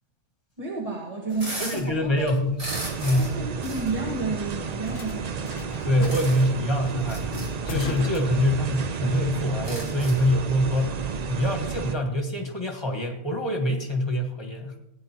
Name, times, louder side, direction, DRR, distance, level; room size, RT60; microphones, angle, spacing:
voice 1, 0.6-2.3 3.2-6.1, right 3 dB, 25° right, -3 dB, 1.8 m, -32 dB
sound 1, 1.3-1.9 2.2-3.4 3.6-3.9 4.8-4.9 6.1-6.5 7.0-7.5 8.4-8.5 8.8-8.9 9.4-10.3, right 1 dB, 80° right, 3.5 m, -36 dB
voice 2, 1.6-2.6 3.0-3.3 5.8-7.4 7.7-14.7, equal, 20° left, 2 dB, 1.6 m, -25 dB
sound 2, 1.7-9.0, left 5 dB, 70° left, 1.3 m, -40 dB
sound 3, 2.7-12.0, right 6 dB, 60° right, 0.4 m, -32 dB
16.5 x 9.6 x 2.9 m, 0.85 s
omnidirectional pair, 1.4 m